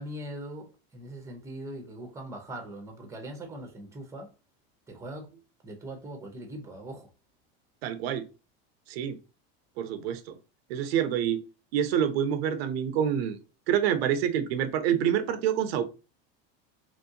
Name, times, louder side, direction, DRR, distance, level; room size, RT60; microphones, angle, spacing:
voice 1, 0.0-4.3 4.9-5.3 5.6-7.1, right 1 dB, 10° right, 0.8 m, -41 dB
voice 2, 7.8-8.3 8.9-9.2 9.8-10.4 10.7-11.4 11.7-13.4 13.7-15.8, right 9 dB, 85° right, 0.6 m, -27 dB
3.0 x 2.6 x 2.7 m
supercardioid pair, 130°, 30 cm